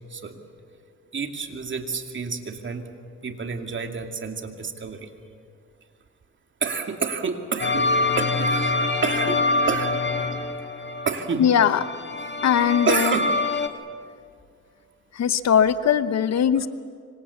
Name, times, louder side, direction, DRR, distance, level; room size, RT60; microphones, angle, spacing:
voice 1, 1.1-2.8 3.2-5.1 6.6-7.9 8.2-8.7 9.0-10.0 11.0-11.5 12.9-13.3, right 5 dB, 40° right, 4 dB, 2.7 m, -28 dB
sound 1, 7.6-13.7, left 3 dB, 35° left, 1.8 m, -25 dB
voice 2, 11.4-11.8 12.4-13.2 15.1-16.7, left 8 dB, 60° left, 13 dB, 1.0 m, -20 dB
25.5 x 25.0 x 7.3 m, 2.2 s
cardioid pair, 90°, 30 cm